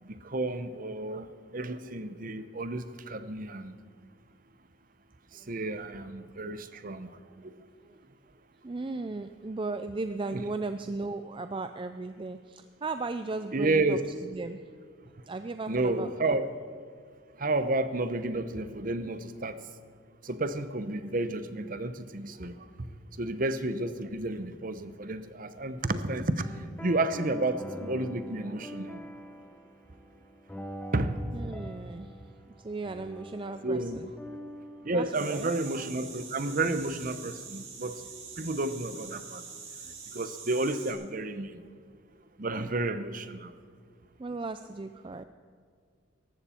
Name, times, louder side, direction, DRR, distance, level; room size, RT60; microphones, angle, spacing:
voice 1, 0.0-3.8 5.3-7.6 10.3-10.4 13.5-14.0 15.7-16.5 17.4-19.6 20.2-22.9 23.2-29.0 30.9-31.6 31.8-31.9 33.6-34.0 34.8-38.0 38.4-39.4 39.8-41.6 42.4-43.5, right 2 dB, 45° right, 11 dB, 0.8 m, -31 dB
voice 2, 8.6-14.6 15.3-16.4 31.3-32.2 32.6-34.1 34.9-35.5 38.4-38.5 44.2-45.2, right 3 dB, 25° right, 9 dB, 0.4 m, -36 dB
sound 1, 26.4-35.9, equal, 10° left, 0.8 m, -44 dB
sound 2, 35.1-40.9, right 5 dB, 85° right, 4.6 m, -44 dB
18.5 x 14.0 x 4.4 m, 2.1 s
head